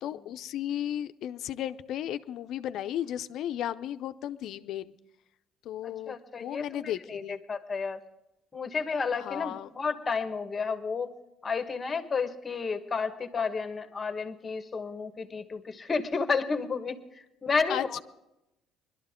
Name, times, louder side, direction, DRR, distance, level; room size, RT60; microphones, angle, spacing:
voice 1, 0.0-4.9 5.6-7.4 9.1-9.7 17.7-18.0, left 11 dB, 70° left, 11 dB, 0.6 m, -34 dB
voice 2, 5.8-8.0 8.5-11.1 11.4-18.0, left 5 dB, 30° left, 8 dB, 1.3 m, -31 dB
21.0 x 12.5 x 3.7 m, 0.88 s
cardioid pair, 95°, 0 cm